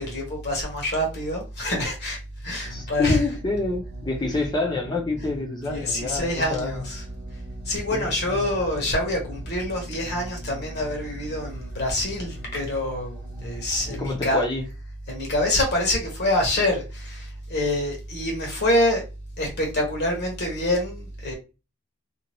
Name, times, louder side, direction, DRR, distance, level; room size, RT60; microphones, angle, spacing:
voice 1, 0.0-3.2 5.7-7.0 7.6-14.4 15.1-19.0 19.4-21.3, left 1 dB, 50° left, 1.1 m, -26 dB
sound 1, 2.6-14.1, right 1 dB, 55° right, 0.9 m, -41 dB
voice 2, 2.7-6.8 7.9-8.5 13.9-14.6, left 3 dB, 20° left, 0.7 m, -27 dB
2.6 x 2.4 x 3.0 m
head